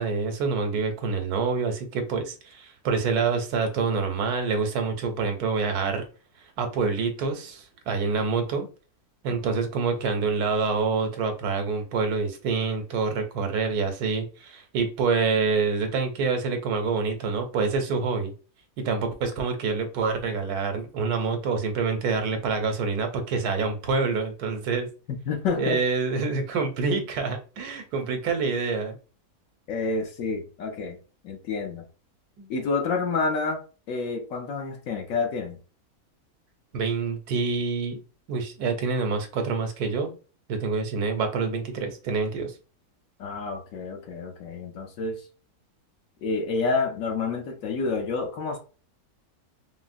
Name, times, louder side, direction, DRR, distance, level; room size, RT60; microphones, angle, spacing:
voice 1, 0.0-6.0 6.6-8.7 9.2-18.3 18.8-24.9 25.6-29.0 32.4-32.5 36.7-38.0 38.3-40.1 40.5-42.5, right 4 dB, 80° right, 1.2 m, -26 dB
voice 2, 25.1-25.8 29.7-31.0 31.2-31.9 32.5-33.6 33.9-35.6 43.2-45.2 46.2-48.6, left 4 dB, 65° left, 1.0 m, -28 dB
3.8 x 2.0 x 2.4 m
omnidirectional pair, 1.6 m